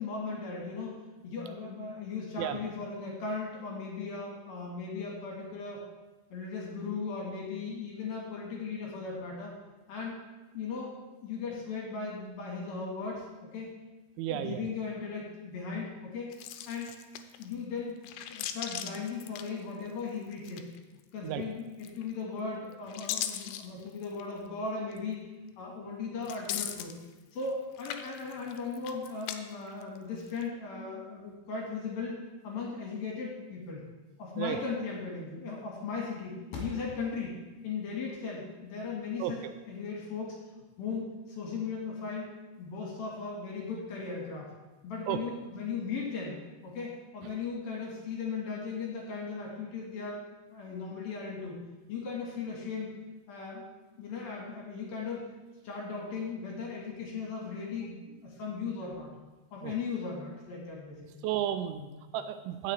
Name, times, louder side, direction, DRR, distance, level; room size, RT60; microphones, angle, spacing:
voice 1, 0.0-5.9 6.3-9.5 9.9-10.2 10.5-11.0 11.2-13.7 14.3-16.4 16.7-17.0 17.4-20.7 21.1-25.2 25.6-26.9 27.3-33.8 34.2-37.4 37.6-40.4 40.8-42.3 42.6-44.5 44.8-46.4 46.6-50.2 50.5-51.6 51.9-52.9 53.3-53.6 54.0-55.3 55.6-59.1 59.5-61.2 61.7-62.0, left 4 dB, 60° left, -2 dB, 2.9 m, -37 dB
voice 2, 14.2-14.7 21.2-21.4 34.4-34.6 39.2-39.3 45.1-45.2 59.6-59.7 61.2-61.8 62.1-62.7, right 12 dB, 85° right, 9 dB, 2.8 m, -32 dB
sound 1, 16.3-17.5 18.0-20.0 20.3-21.0 21.8-22.3 22.7-24.3 24.9-25.0 26.2-27.5 27.8-29.4 29.7-30.4, left 11 dB, 90° left, 3.1 m, -39 dB
16.0 x 6.7 x 3.3 m, 1.1 s
omnidirectional pair, 5.4 m